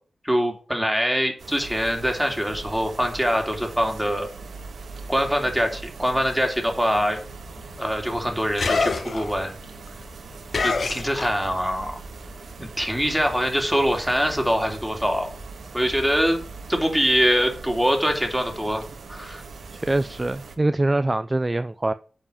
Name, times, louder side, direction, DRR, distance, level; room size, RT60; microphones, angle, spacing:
voice 1, 0.2-4.3 5.1-7.2 7.8-9.5 10.6-12.0 12.6-15.3 15.7-18.8 19.1-19.4, equal, 5° right, 3.0 m, -23 dB
sound 1, 1.4-20.6, right 4 dB, 80° right, 1.4 m, -40 dB
sound 2, 7.2-11.8 12.1-15.4, left 4 dB, 65° left, 1.3 m, -30 dB
voice 2, 19.7-21.9, right 2 dB, 25° right, 0.5 m, -24 dB
9.0 x 5.1 x 7.0 m
cardioid pair, 60°, 0 cm